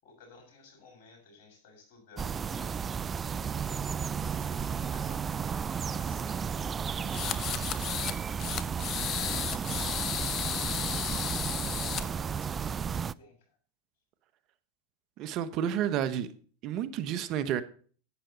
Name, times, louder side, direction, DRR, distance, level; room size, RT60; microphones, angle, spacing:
voice 1, 0.0-2.8 4.3-5.3 5.9-6.5 6.9-8.1 9.4-10.1 11.4-13.6, left 3 dB, 60° left, 6.6 m, -56 dB
sound 1, 2.2-13.1, right 6 dB, 25° right, 0.4 m, -33 dB
sound 2, 7.1-8.2 8.4-12.0, left 10 dB, 40° left, 0.9 m, -34 dB
voice 2, 15.2-16.3 16.6-17.6, right 9 dB, 50° right, 1.0 m, -30 dB
11.5 x 9.3 x 3.9 m
hypercardioid pair, 105°, 0 cm